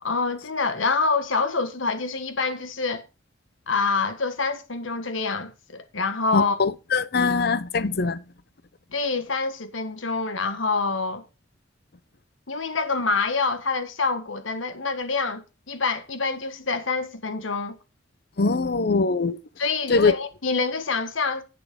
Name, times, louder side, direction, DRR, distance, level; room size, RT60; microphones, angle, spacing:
voice 1, 0.0-3.0 3.7-6.5 8.9-11.2 12.5-17.8 19.6-21.4, left 4 dB, 85° left, 1.5 m, -26 dB
voice 2, 6.3-8.2 18.4-19.4 19.9-20.1, left 4 dB, 55° left, 0.6 m, -22 dB
10.5 x 8.5 x 3.6 m
head